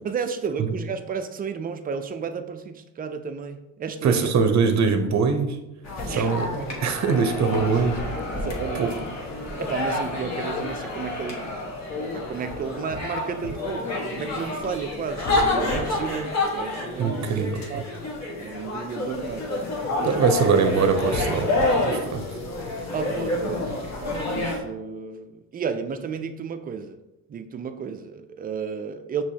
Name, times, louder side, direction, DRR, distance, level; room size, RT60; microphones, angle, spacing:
voice 1, 0.0-4.3 6.0-6.7 8.4-8.9 9.6-11.6 12.0-17.9 18.3-19.4 20.0-20.3 22.9-23.7 24.0-27.0 27.3-29.2, right 6 dB, 25° right, 9 dB, 0.3 m, -32 dB
voice 2, 4.0-5.6 6.1-6.5 6.8-8.0 8.7-8.9 17.0-17.8 20.0-21.5 21.8-22.2, right 5 dB, 40° right, 6 dB, 0.7 m, -22 dB
sound 1, 5.8-24.6, left 2 dB, 40° left, 1.2 m, -29 dB
sound 2, 6.5-13.7, left 2 dB, 90° left, 1.3 m, -36 dB
6.0 x 3.0 x 2.8 m, 0.98 s
supercardioid pair, 80°, 41 cm